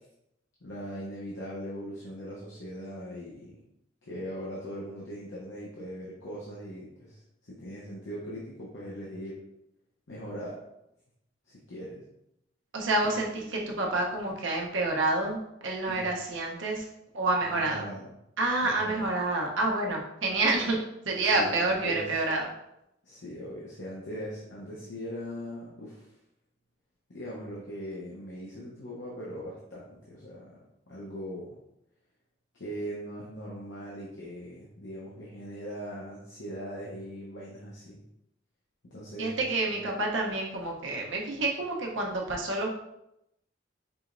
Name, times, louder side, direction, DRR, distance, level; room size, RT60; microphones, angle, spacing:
voice 1, 0.6-3.6 4.0-9.4 10.1-10.6 11.5-12.0 13.0-13.7 15.9-16.1 17.4-18.1 18.6-19.1 21.2-22.2 23.0-26.1 27.1-30.6 30.9-31.6 32.5-38.0 38.8-39.4 39.7-39.9, equal, 70° left, -5 dB, 0.8 m, -40 dB
voice 2, 12.7-15.4 15.6-16.9 17.1-17.8 18.4-20.8 21.1-22.4 39.2-42.7, right 2 dB, 80° right, 0 dB, 0.8 m, -28 dB
4.9 x 3.0 x 2.5 m, 0.83 s
head